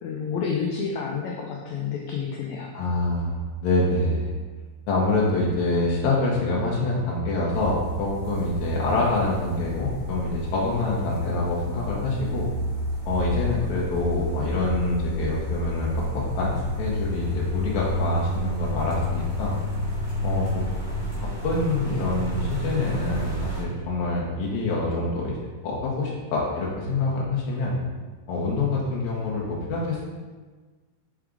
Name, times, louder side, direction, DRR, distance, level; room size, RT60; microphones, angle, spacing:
voice 1, 0.0-2.7, left 6 dB, 90° left, 0 dB, 1.6 m, -29 dB
voice 2, 2.7-4.4 4.9-12.5 13.1-19.6 20.2-20.6 21.4-25.4 25.6-27.8 28.3-30.1, left 2 dB, 70° left, -4 dB, 1.9 m, -26 dB
sound 1, 7.5-23.6, equal, 40° right, 2.4 m, -30 dB
5.8 x 4.7 x 3.7 m, 1.4 s
omnidirectional pair, 3.9 m